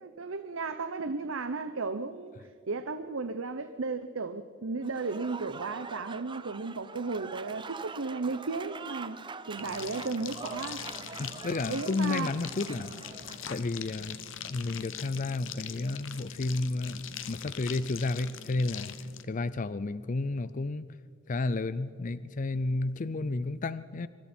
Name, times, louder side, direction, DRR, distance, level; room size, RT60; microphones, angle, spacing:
voice 1, 0.0-9.2 9.5-10.8 11.7-12.3, right 3 dB, 85° right, 10 dB, 0.8 m, -34 dB
Applause / Crowd, 4.8-13.7, right 5 dB, 25° right, 0.6 m, -44 dB
sound 1, 9.6-19.2, left 8 dB, 70° left, 1.1 m, -42 dB
voice 2, 11.2-12.9 13.5-14.2 14.5-18.9 19.3-20.9 21.3-24.1, left 3 dB, 40° left, 15 dB, 0.5 m, -32 dB
25.0 x 24.0 x 4.4 m, 2.3 s
head